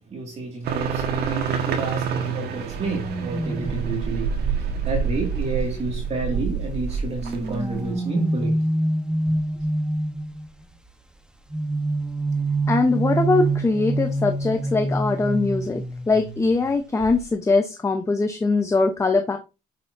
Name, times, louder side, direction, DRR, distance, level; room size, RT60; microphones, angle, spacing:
voice 1, 0.1-4.3 4.9-8.6, right 3 dB, 40° right, 2.2 m, -30 dB
sound 1, 0.6-7.9, right 6 dB, 70° right, 1.6 m, -27 dB
sound 2, 3.0-6.6 7.2-10.5 11.5-16.7 17.0-17.3, right 2 dB, 5° right, 1.1 m, -27 dB
voice 2, 12.7-19.4, left 3 dB, 15° left, 0.8 m, -22 dB
8.2 x 6.5 x 2.7 m
cardioid pair, 110°, 17 cm